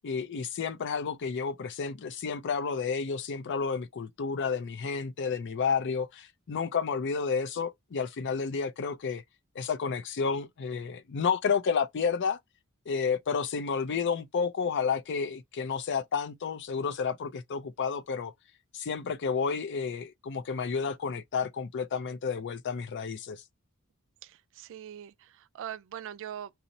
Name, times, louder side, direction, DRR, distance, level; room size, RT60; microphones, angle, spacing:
voice 1, 0.0-9.2 9.6-12.4 12.9-18.3 18.7-23.4, left 5 dB, 55° left, 0.4 m, -31 dB
voice 2, 24.2-26.5, right 10 dB, 60° right, 0.3 m, -42 dB
4.0 x 2.0 x 2.6 m
head